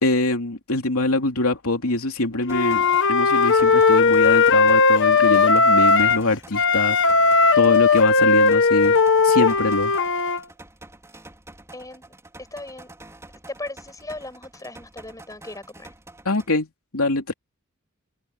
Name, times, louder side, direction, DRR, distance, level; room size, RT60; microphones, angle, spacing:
voice 1, 0.0-2.8 3.1-7.0 7.6-9.0 9.2-9.9 16.2-16.7 16.9-17.3, left 2 dB, 80° left, 2.9 m, -23 dB
Wind instrument woodwind instrument, 2.5-6.3 6.5-10.4, left 4 dB, 60° left, 1.5 m, -17 dB
sound 1, 2.5-16.5, right 2 dB, 15° right, 5.0 m, -47 dB
voice 2, 11.7-12.0 12.5-12.9 13.5-15.9, left 2 dB, 15° left, 6.0 m, -37 dB
head